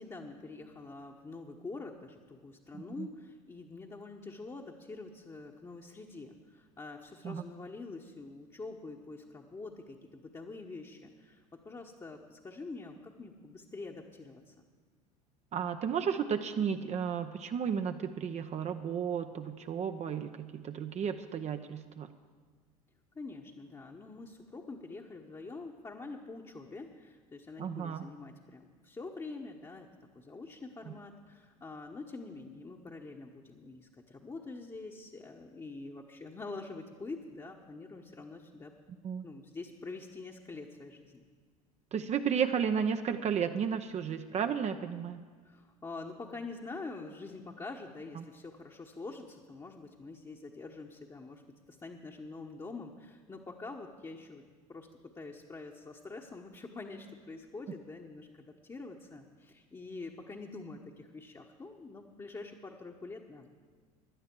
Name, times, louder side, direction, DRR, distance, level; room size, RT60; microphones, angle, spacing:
voice 1, 0.0-14.5 23.1-29.9 30.1-38.7 39.2-41.3 45.4-54.4 54.7-54.9 55.2-63.5, left 3 dB, 20° left, -1 dB, 1.2 m, -45 dB
voice 2, 15.5-22.1 27.6-28.1 30.9-31.0 39.0-39.2 41.9-45.2 48.1-48.2, right 7 dB, 35° right, 7 dB, 0.7 m, -33 dB
16.5 x 11.5 x 4.6 m, 1.6 s
hypercardioid pair, 75°, 20 cm